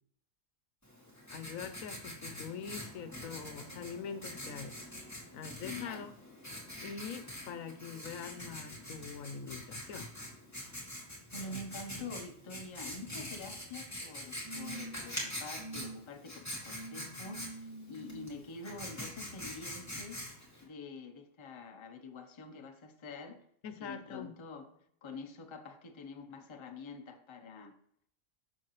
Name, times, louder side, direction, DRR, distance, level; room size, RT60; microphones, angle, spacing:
Writing, 0.8-20.6, left 1 dB, 10° left, 2.1 m, -45 dB
voice 1, 1.3-4.8 5.3-6.1 6.8-10.1 23.6-24.3, left 6 dB, 80° left, 10 dB, 1.1 m, -44 dB
voice 2, 5.6-6.0 11.3-20.3 20.6-23.4 23.8-27.8, left 3 dB, 30° left, 5 dB, 0.6 m, -46 dB
sound 1, 13.2-13.7 14.4-15.1 15.5-16.0 16.7-18.3 19.5-19.6, right 2 dB, 30° right, 1.5 m, -47 dB
7.6 x 6.4 x 3.0 m, 0.67 s
omnidirectional pair, 1.4 m